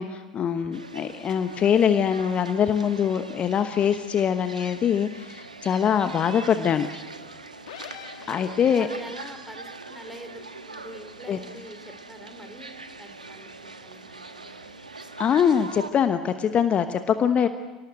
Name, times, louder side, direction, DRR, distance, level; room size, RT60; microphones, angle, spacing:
voice 1, 0.0-6.9 8.3-8.9 11.3-11.4 15.2-17.5, left 8 dB, 30° left, 9 dB, 1.1 m, -23 dB
sound 1, 0.7-15.9, right 3 dB, 90° right, 1.5 m, -42 dB
sound 2, 7.7-9.1, left 9 dB, 65° left, 2.2 m, -43 dB
voice 2, 8.2-11.8 12.1-12.7 13.0-14.7, equal, 5° right, 7 dB, 3.1 m, -44 dB
29.5 x 18.5 x 8.0 m, 1.3 s
figure-of-eight pair, 80°, 4 cm